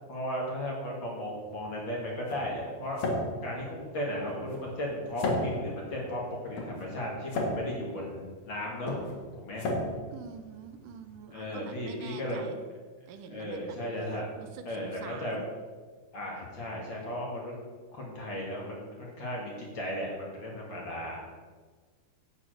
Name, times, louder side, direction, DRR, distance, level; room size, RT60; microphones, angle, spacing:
voice 1, 0.1-3.0 3.4-9.0 9.4-9.7 11.3-12.4 13.3-14.3 14.7-15.4 16.1-17.5 17.9-21.3, equal, 40° left, -2 dB, 2.3 m, -35 dB
sound 1, 1.3-11.1, left 1 dB, 70° left, 3.0 m, -36 dB
voice 2, 10.1-12.7 13.1-13.8 14.4-15.5, right 6 dB, 85° right, 7 dB, 2.4 m, -46 dB
8.6 x 6.9 x 6.4 m, 1.5 s
omnidirectional pair, 3.7 m